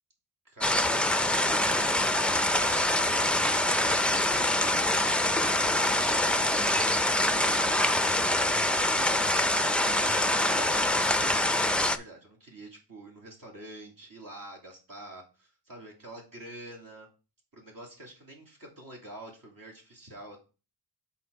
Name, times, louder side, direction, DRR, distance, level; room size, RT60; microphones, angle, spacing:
voice 1, 0.4-1.0 1.5-1.9 2.4-4.9 5.3-7.7 8.7-9.2 10.0-11.2 11.7-17.1 17.5-20.4, right 1 dB, 50° right, -1 dB, 2.9 m, -47 dB
sound 1, 0.6-12.0, left 1 dB, 5° left, 0.4 m, -25 dB
5.7 x 4.2 x 5.2 m, 0.33 s
cardioid pair, 70°, 42 cm